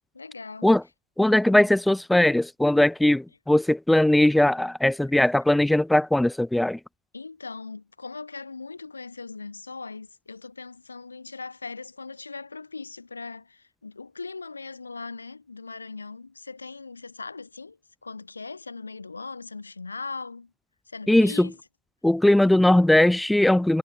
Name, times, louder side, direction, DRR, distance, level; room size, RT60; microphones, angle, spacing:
voice 1, 0.1-0.8 7.1-20.5 20.9-21.6, left 4 dB, 80° left, 1.2 m, -39 dB
voice 2, 1.2-6.8 21.1-21.5 22.0-23.8, left 1 dB, 5° left, 0.3 m, -19 dB
figure-of-eight pair, 90°, 0 cm